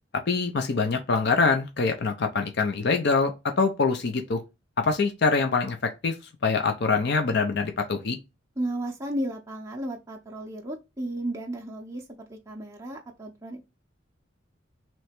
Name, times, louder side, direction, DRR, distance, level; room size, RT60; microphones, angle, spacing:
voice 1, 0.3-4.4 4.8-6.1 6.4-8.2, left 4 dB, 60° left, 0.6 m, -24 dB
voice 2, 8.6-13.6, right 1 dB, 15° right, 0.6 m, -34 dB
3.2 x 2.9 x 4.4 m
head